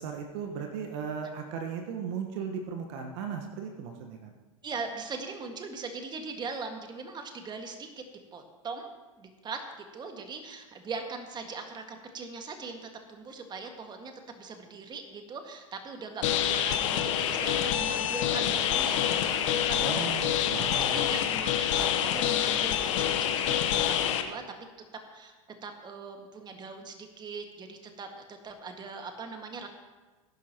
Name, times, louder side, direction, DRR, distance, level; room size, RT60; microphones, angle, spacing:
voice 1, 0.0-4.3 19.8-21.2, right 6 dB, 55° right, 4 dB, 1.4 m, -37 dB
voice 2, 4.6-7.9 8.3-9.6 9.9-21.5 21.8-24.4 25.1-25.3 25.6-29.7, right 4 dB, 25° right, 4 dB, 1.9 m, -40 dB
sound 1, 16.2-24.2, left 10 dB, 60° left, 1.1 m, -27 dB
20.5 x 11.0 x 3.0 m, 1.2 s
hypercardioid pair, 90°, 18 cm